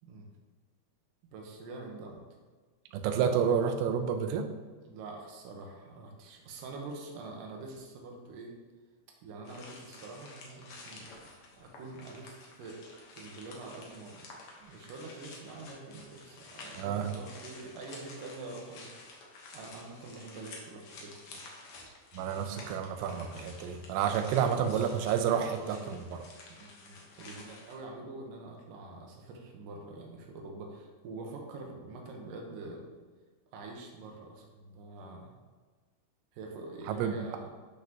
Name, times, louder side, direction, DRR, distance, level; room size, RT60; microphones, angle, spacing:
voice 1, 1.3-2.3 4.9-8.5 9.2-11.0 11.5-12.8 13.2-18.9 19.5-21.3 24.3-24.9 25.7-26.0 26.5-32.8 33.5-35.4 36.3-37.5, right 3 dB, 65° right, 0 dB, 2.3 m, -45 dB
voice 2, 2.9-4.5 16.8-17.1 22.1-26.2 36.9-37.2, right 8 dB, 90° right, 7 dB, 3.1 m, -30 dB
sound 1, 9.5-27.7, left 3 dB, 75° left, 1.6 m, -51 dB
12.0 x 5.8 x 3.0 m, 1.4 s
omnidirectional pair, 5.2 m